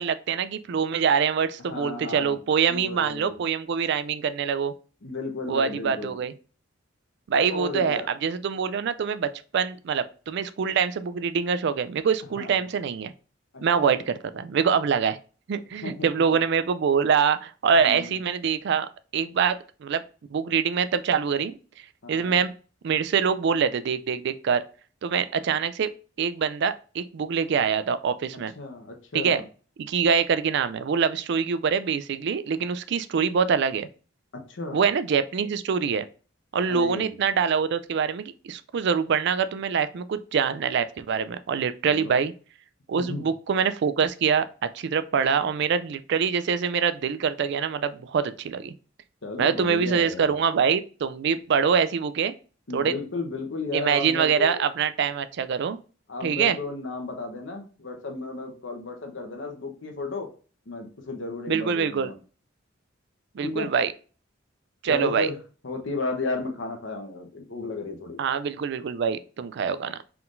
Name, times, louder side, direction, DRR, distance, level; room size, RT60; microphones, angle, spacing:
voice 1, 0.0-4.7 5.5-6.3 7.3-9.3 9.5-13.1 13.6-15.2 15.5-20.0 20.3-21.5 22.1-22.5 22.8-24.6 25.0-25.9 26.2-28.5 29.1-29.4 29.8-33.9 34.7-36.1 36.5-42.3 42.9-44.5 44.7-48.7 49.4-52.3 52.7-52.9 53.7-55.8 56.2-56.6 61.5-62.1 63.3-63.9 64.8-65.3 68.2-70.0, right 6 dB, 60° right, 13 dB, 0.4 m, -24 dB
voice 2, 1.6-2.4 2.7-3.4 5.0-6.2 7.4-8.1 12.3-12.7 13.8-14.0 15.8-16.1 17.8-18.2 22.0-22.4 28.6-29.4 34.5-34.8 36.7-37.2 41.9-42.2 43.0-43.3 49.2-50.4 52.7-54.6 56.1-60.3 60.7-62.2 63.4-63.7 64.8-65.4 65.6-68.2, left 3 dB, 70° left, 3 dB, 1.0 m, -34 dB
4.5 x 3.7 x 2.5 m, 0.38 s
head